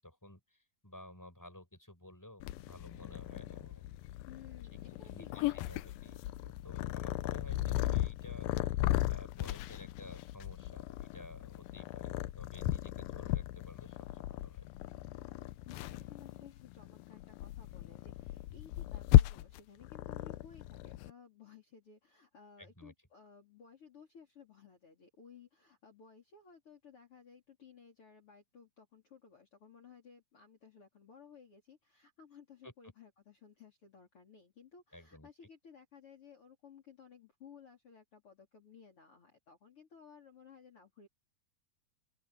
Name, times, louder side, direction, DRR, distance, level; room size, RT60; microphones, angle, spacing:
voice 1, 0.0-3.9 5.0-14.7 22.6-22.9 32.6-32.7 34.9-35.3, left 1 dB, 5° left, 7.8 m, -54 dB
Purr, 2.4-21.1, left 15 dB, 85° left, 2.4 m, -35 dB
voice 2, 4.3-6.2 15.6-41.1, left 6 dB, 35° left, 4.7 m, -57 dB
open air
omnidirectional pair, 4.3 m